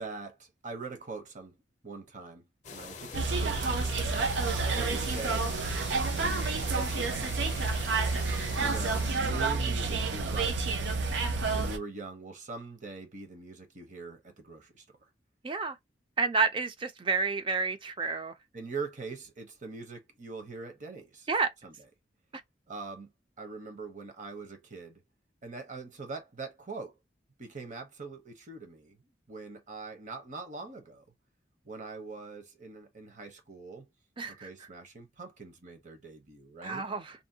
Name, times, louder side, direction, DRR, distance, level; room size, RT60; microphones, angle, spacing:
voice 1, 0.0-1.6 1.8-3.6 4.7-5.5 6.1-7.2 8.6-10.7 11.5-14.8 18.5-21.3 21.6-21.8 22.7-23.1 23.4-25.0 25.4-26.9 27.4-29.0 29.3-31.0 31.6-33.9 34.3-36.9, right 3 dB, 45° right, 0.8 m, -42 dB
sound 1, 2.6-9.1, left 5 dB, 40° left, 0.5 m, -44 dB
sound 2, 3.1-11.8, right 4 dB, 80° right, 0.5 m, -29 dB
voice 2, 15.4-15.8 16.2-18.3 21.3-21.5 34.2-34.5 36.6-37.1, right 4 dB, 30° right, 0.4 m, -29 dB
2.6 x 2.1 x 2.6 m
head